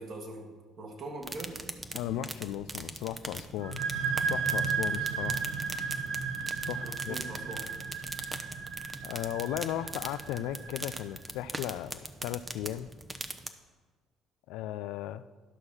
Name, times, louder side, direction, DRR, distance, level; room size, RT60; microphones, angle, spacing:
voice 1, 0.0-1.6 6.8-7.7, right 2 dB, 55° right, 2 dB, 2.0 m, -42 dB
sound 1, 1.2-13.5, right 2 dB, 20° right, 0.8 m, -42 dB
voice 2, 1.9-3.8 4.3-5.5 6.7-7.2 9.0-12.9 14.5-15.2, left 12 dB, 70° left, 14 dB, 0.3 m, -36 dB
sound 2, 3.6-11.0, right 5 dB, 75° right, 2.4 m, -34 dB
11.5 x 6.0 x 5.6 m, 1.4 s
hypercardioid pair, 55°, 0 cm